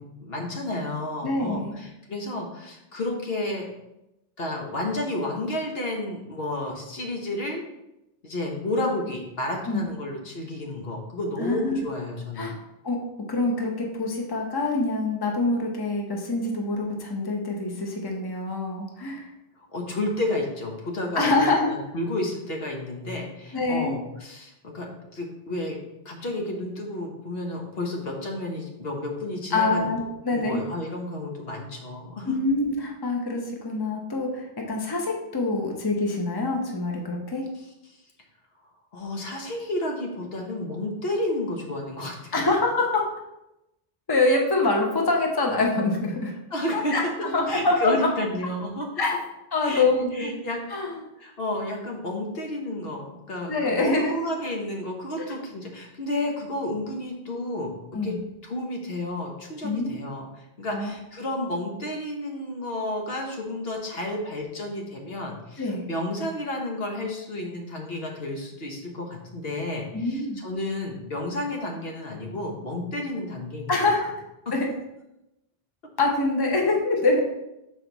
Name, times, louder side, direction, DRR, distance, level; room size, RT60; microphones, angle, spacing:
voice 1, 0.0-3.7 4.4-7.6 8.2-12.5 19.7-25.8 26.0-29.9 30.3-32.3 38.9-42.5 46.5-46.9 47.5-48.9 49.6-49.9 50.1-50.6 51.2-57.7 58.0-58.1 58.4-73.8 74.4-74.5, left 1 dB, 75° left, 1 dB, 1.3 m, -31 dB
voice 2, 1.2-1.7 9.6-9.8 11.4-11.8 12.4-12.6 12.8-13.0 13.3-19.3 21.1-21.7 23.5-23.9 29.5-30.6 32.2-37.4 42.3-43.0 44.1-46.3 46.7-47.0 47.3-48.1 49.0-49.2 49.5-50.3 50.7-51.0 53.5-54.1 57.9-58.2 59.6-59.9 60.7-60.9 65.6-65.8 69.9-70.4 73.7-74.1 74.5-74.7 76.0-77.2, left 2 dB, 25° left, 1 dB, 0.9 m, -25 dB
6.5 x 4.4 x 3.9 m, 0.90 s
omnidirectional pair, 1.0 m